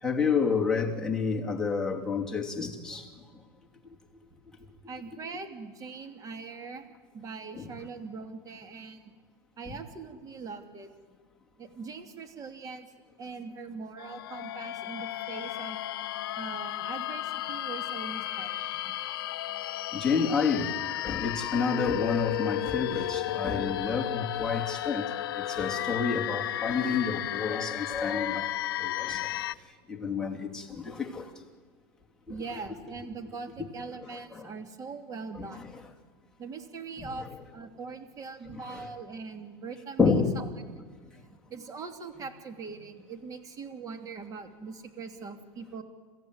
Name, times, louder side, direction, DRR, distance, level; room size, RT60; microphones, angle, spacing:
voice 1, 0.0-3.1 7.6-7.7 19.9-20.7 21.0-28.5 28.8-29.5 29.9-31.3 34.3-34.5 35.4-35.5 37.0-37.3 38.5-38.9 40.0-40.4, left 5 dB, 5° left, 3.0 m, -29 dB
voice 2, 4.9-6.9 7.1-9.0 9.6-10.9 11.6-12.9 13.2-15.8 16.4-18.9 32.3-35.8 36.4-40.5 40.7-40.8 41.2-45.8, right 4 dB, 30° right, 2.7 m, -42 dB
sound 1, 14.0-29.6, left 14 dB, 90° left, 0.6 m, -34 dB
30.0 x 15.0 x 9.6 m
supercardioid pair, 125°, 12 cm